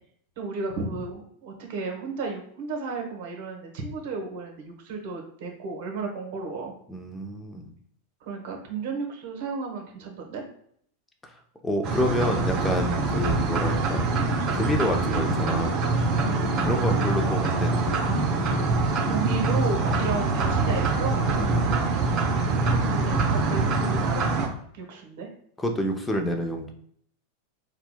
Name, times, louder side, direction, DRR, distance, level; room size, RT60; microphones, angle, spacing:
voice 1, 0.4-6.7 8.2-10.4 16.2-16.5 18.6-21.2 22.7-24.5 24.7-25.3, right 4 dB, 60° right, 1 dB, 1.0 m, -33 dB
voice 2, 6.9-7.7 11.2-11.3 11.6-14.1 14.5-15.8 16.6-18.0 21.4-21.8 25.6-26.7, equal, 10° left, 3 dB, 0.6 m, -28 dB
sound 1, 11.8-24.5, right 3 dB, 40° right, 0.8 m, -24 dB
4.3 x 2.2 x 2.3 m, 0.65 s
hypercardioid pair, 100°, 0 cm